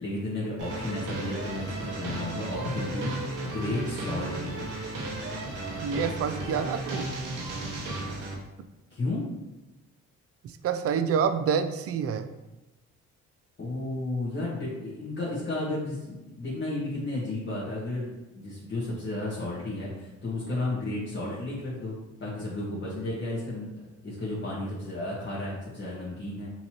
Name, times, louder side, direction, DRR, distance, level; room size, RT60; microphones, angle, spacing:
voice 1, 0.0-3.1 3.4-4.6 8.9-9.3 13.6-23.7 24.0-26.5, left 2 dB, 40° left, -8 dB, 1.4 m, -33 dB
sound 1, 0.6-8.3, right 2 dB, 85° right, 1.1 m, -34 dB
voice 2, 5.8-7.1 10.4-12.3, right 7 dB, 50° right, 10 dB, 0.4 m, -27 dB
5.6 x 2.9 x 3.0 m, 1.0 s
cardioid pair, 90°, 30 cm